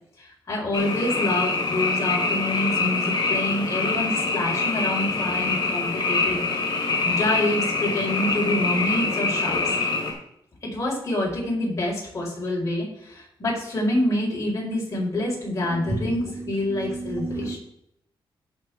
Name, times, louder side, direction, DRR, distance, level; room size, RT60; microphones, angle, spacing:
voice 1, 0.2-6.4 7.0-9.8 10.6-17.6, left 1 dB, 35° left, -4 dB, 5.0 m, -27 dB
Frog, 0.7-10.1, left 3 dB, 50° left, 3.7 m, -25 dB
voice 2, 15.7-17.6, right 2 dB, 30° right, 2 dB, 1.5 m, -32 dB
17.0 x 6.4 x 3.6 m, 0.74 s
wide cardioid pair, 135°, 9 cm